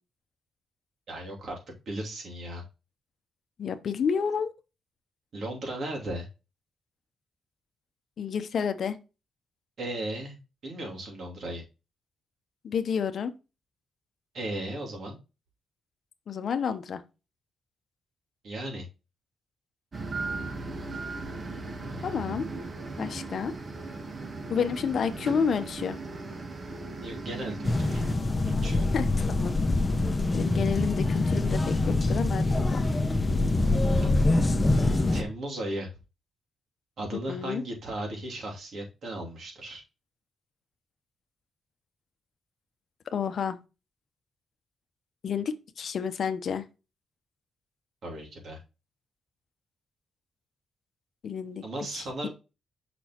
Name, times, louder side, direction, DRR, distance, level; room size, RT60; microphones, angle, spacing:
voice 1, 1.1-1.6 1.9-2.6 5.3-6.3 9.8-10.3 10.6-11.6 14.3-15.2 18.4-18.9 21.8-22.4 27.0-28.0 28.4-28.9 33.9-34.2 35.1-35.9 37.0-39.8 48.0-48.6 51.6-52.3, right 1 dB, 60° right, 2.6 m, -36 dB
voice 2, 3.6-4.5 8.2-9.0 12.6-13.3 16.3-17.0 22.0-22.5 23.0-23.5 24.5-26.0 28.9-29.5 30.3-32.8 37.3-37.6 43.1-43.6 45.2-46.6 51.2-51.6 51.9-52.3, left 6 dB, 60° left, 0.8 m, -30 dB
sound 1, 19.9-28.1, right 3 dB, 35° right, 0.9 m, -37 dB
sound 2, 27.6-35.2, left 2 dB, 20° left, 0.9 m, -25 dB
6.1 x 6.0 x 2.9 m
cardioid pair, 110°, 0 cm